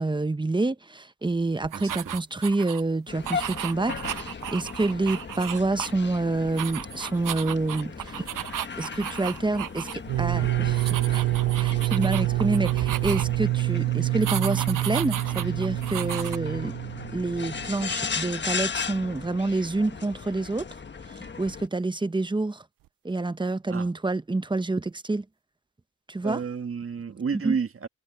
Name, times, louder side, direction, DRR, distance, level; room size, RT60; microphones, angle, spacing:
voice 1, 0.0-8.2 8.8-16.7 17.1-20.7 21.1-22.6 23.0-25.2 26.1-26.4 27.4-27.6, right 2 dB, 15° right, 0.9 m, -28 dB
sound 1, 1.6-2.8 3.2-6.2 6.5-9.9 10.2-10.4 10.7-13.5 14.2-16.4, right 11 dB, 75° right, 1.0 m, -35 dB
voice 2, 1.7-2.2 23.7-23.9 26.2-27.9, right 6 dB, 40° right, 1.8 m, -31 dB
sound 2, 3.1-21.7, left 5 dB, 35° left, 1.3 m, -37 dB
sound 3, 10.1-17.8, right 17 dB, 90° right, 0.5 m, -27 dB
cardioid pair, 85°, 32 cm